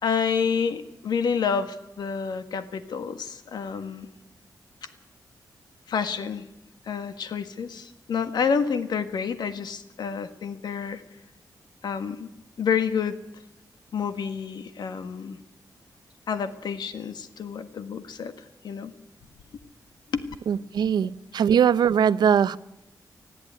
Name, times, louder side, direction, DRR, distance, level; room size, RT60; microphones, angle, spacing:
voice 1, 0.0-4.1 5.9-6.4 6.8-11.0 11.8-12.3 12.6-13.2 13.9-15.4 16.3-18.3 18.6-18.9 20.1-20.2 21.0-21.1, left 6 dB, 90° left, 1.6 m, -28 dB
voice 2, 20.5-22.6, right 8 dB, 90° right, 0.7 m, -21 dB
20.0 x 14.0 x 9.4 m
wide cardioid pair, 140°, 7 cm